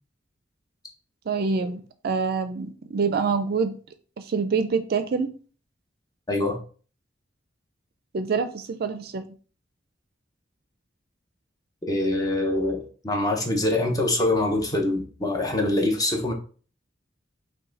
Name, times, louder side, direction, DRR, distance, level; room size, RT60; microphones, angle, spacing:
voice 1, 1.3-3.8 4.2-5.3 8.1-9.2, right 5 dB, 55° right, 10 dB, 0.4 m, -26 dB
voice 2, 6.3-6.6 11.9-16.3, left 2 dB, 20° left, 2 dB, 0.9 m, -24 dB
5.5 x 2.3 x 3.9 m, 0.40 s
head